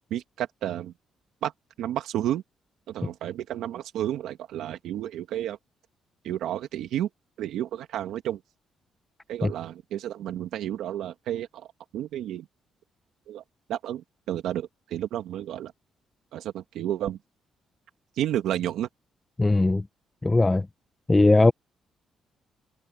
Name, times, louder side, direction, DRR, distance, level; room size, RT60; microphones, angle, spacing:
voice 1, 0.1-0.9 1.4-1.5 1.8-2.4 2.9-5.6 6.2-7.1 7.4-8.4 9.3-11.7 11.9-12.5 13.3-13.4 13.7-15.7 16.3-17.2 18.2-18.9, right 11 dB, 85° right, 2.0 m, -31 dB
voice 2, 19.4-19.8 20.2-20.7 21.1-21.5, left 2 dB, 15° left, 0.8 m, -19 dB
cardioid pair, 90°, 0 cm